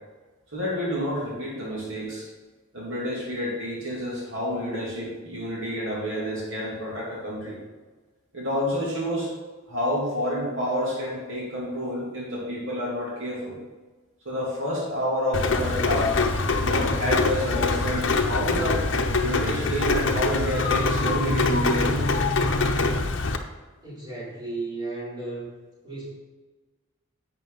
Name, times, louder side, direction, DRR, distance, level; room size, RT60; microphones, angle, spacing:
voice 1, 0.5-2.3 2.7-7.6 8.3-9.3 9.7-13.6 14.2-16.2 16.6-18.8 19.2-22.1, equal, 60° right, -5 dB, 3.0 m, -29 dB
Rain, 15.3-23.4, left 3 dB, 55° left, 0.8 m, -24 dB
voice 2, 23.8-25.5 25.8-26.1, right 2 dB, 20° right, -8 dB, 3.7 m, -34 dB
11.0 x 8.0 x 4.0 m, 1.3 s
head